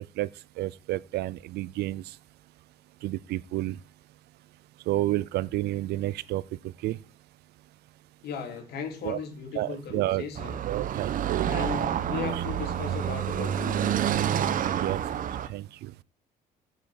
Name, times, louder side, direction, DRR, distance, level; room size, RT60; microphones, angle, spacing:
voice 1, 0.6-2.0 3.0-3.8 4.9-6.4 6.8-7.0 9.0-9.2 9.6-10.2 10.7-11.8 14.7-15.0 15.5-15.9, right 16 dB, 75° right, 0.6 m, -30 dB
voice 2, 8.2-10.6 11.5-14.3, left 7 dB, 75° left, 3.2 m, -37 dB
Car passing by / Traffic noise roadway noise, 10.3-15.5, right 9 dB, 55° right, 1.1 m, -28 dB
8.3 x 7.9 x 7.7 m
cardioid pair, 110°, 17 cm